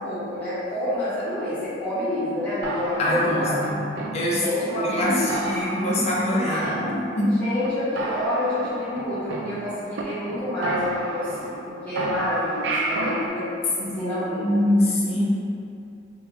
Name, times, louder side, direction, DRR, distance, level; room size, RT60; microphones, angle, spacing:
voice 1, 0.0-3.5 4.3-5.3 6.4-13.5 13.8-14.7, left 1 dB, 10° left, -14 dB, 0.8 m, -28 dB
sound 1, 2.6-4.6 5.0-5.1 5.3-6.3 6.6-7.3 7.6-7.7 8.0-10.0 10.3-10.4 10.6-11.7 12.0-13.3, right 2 dB, 65° right, 0.3 m, -31 dB
voice 2, 3.0-3.8 4.1-4.4 4.7-7.4 13.8-14.1 14.4-15.2, left 1 dB, 35° left, -5 dB, 0.5 m, -24 dB
2.5 x 2.2 x 3.3 m, 2.6 s
head